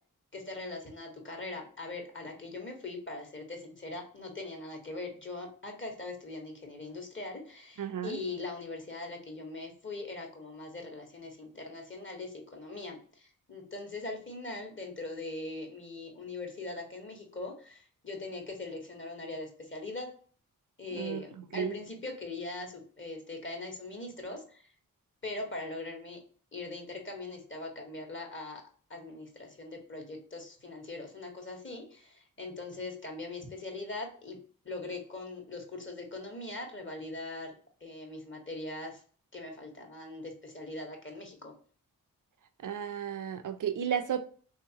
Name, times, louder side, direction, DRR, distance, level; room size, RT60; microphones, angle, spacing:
voice 1, 0.3-20.1 20.8-24.7 25.2-26.2 26.5-28.6 28.9-37.5 37.8-39.0 39.3-41.5, left 2 dB, 35° left, 1.3 m, -41 dB
voice 2, 7.8-8.2 20.9-21.8 42.6-44.2, right 8 dB, 60° right, 0.6 m, -33 dB
3.4 x 2.8 x 2.8 m
cardioid pair, 50°, 35 cm